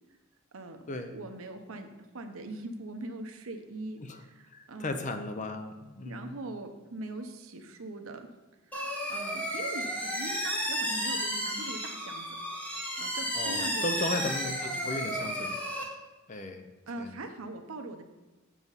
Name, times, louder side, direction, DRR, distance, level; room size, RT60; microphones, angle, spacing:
voice 1, 1.1-1.9 2.1-5.1 6.0-8.3 9.1-12.3 12.7-15.3 16.9-18.1, right 2 dB, 80° right, 6 dB, 0.8 m, -42 dB
voice 2, 4.5-6.4 13.3-15.6 16.3-16.7 17.0-17.2, left 2 dB, 35° left, 7 dB, 0.6 m, -36 dB
sound 1, 8.7-15.8, equal, 5° left, 1.1 m, -33 dB
7.2 x 7.1 x 4.0 m, 1.2 s
head